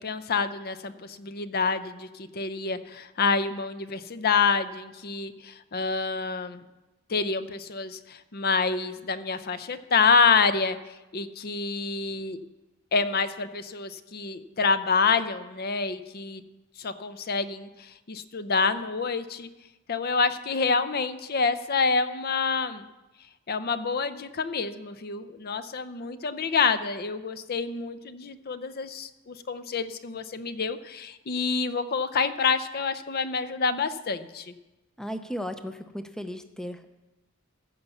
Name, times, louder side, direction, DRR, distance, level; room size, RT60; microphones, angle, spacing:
voice 1, 0.0-6.6 7.1-12.4 12.9-16.4 16.8-19.5 19.9-22.8 23.5-34.5, left 5 dB, 45° left, 12 dB, 0.6 m, -27 dB
voice 2, 35.0-36.9, equal, 5° left, 8 dB, 0.5 m, -35 dB
15.5 x 5.5 x 7.1 m, 1.1 s
head